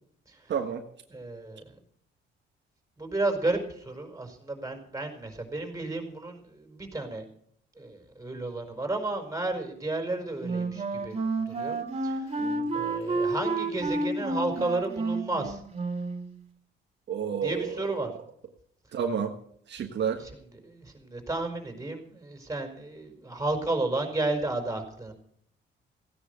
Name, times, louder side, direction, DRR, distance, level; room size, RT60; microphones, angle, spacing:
voice 1, 0.5-0.8 12.4-12.7 17.1-17.8 18.9-19.3 19.7-20.2, right 7 dB, 60° right, 3 dB, 1.6 m, -30 dB
voice 2, 1.1-1.7 3.0-7.2 7.8-11.2 11.5-11.8 12.0-12.4 12.7-15.6 17.4-18.1 20.2-20.3 20.6-25.1, right 2 dB, 15° right, 4 dB, 4.9 m, -32 dB
Wind instrument woodwind instrument, 10.4-16.3, right 3 dB, 30° right, 3.1 m, -30 dB
16.5 x 10.0 x 6.7 m, 0.65 s
cardioid pair, 90°, 20 cm